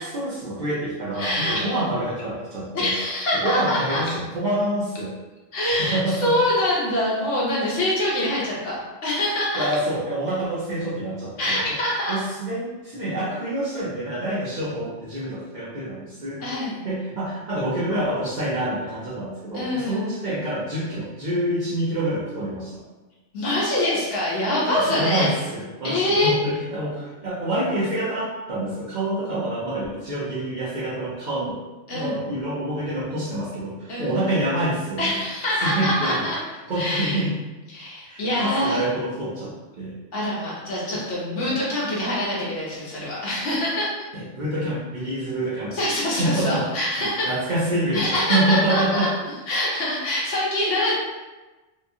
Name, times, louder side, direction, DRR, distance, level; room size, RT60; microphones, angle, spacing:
voice 1, 0.1-2.9 3.4-5.1 5.8-6.3 9.5-11.6 12.1-16.4 16.8-22.8 24.7-31.6 31.9-35.2 35.6-36.2 36.7-37.3 38.0-39.9 40.9-41.0 41.5-41.6 44.1-45.7 46.1-46.6 47.2-49.1, right 1 dB, 50° right, -8 dB, 0.6 m, -27 dB
voice 2, 1.2-1.8 2.7-4.0 5.5-9.7 11.4-12.2 16.4-16.8 19.5-20.1 23.3-25.3 25.8-26.4 31.9-32.2 33.9-34.2 35.0-36.4 36.7-37.2 37.7-38.8 40.1-43.9 45.7-47.3 47.9-49.1 49.5-51.0, left 1 dB, 75° left, -6 dB, 1.2 m, -24 dB
2.8 x 2.3 x 2.6 m, 1.2 s
omnidirectional pair, 1.3 m